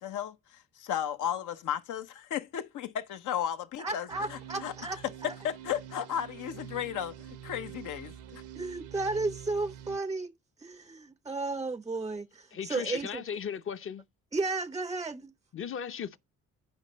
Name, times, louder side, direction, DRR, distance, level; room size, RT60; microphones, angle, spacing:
voice 1, 0.0-4.7 5.2-8.4, left 9 dB, 80° left, 1.0 m, -35 dB
voice 2, 3.8-5.4 8.6-10.3 10.6-13.2 14.3-15.3, right 3 dB, 15° right, 0.4 m, -34 dB
sound 1, 4.1-10.0, right 10 dB, 90° right, 0.8 m, -46 dB
voice 3, 12.5-14.0 15.5-16.2, left 7 dB, 45° left, 0.7 m, -36 dB
9.6 x 5.3 x 5.4 m
cardioid pair, 90°, 30 cm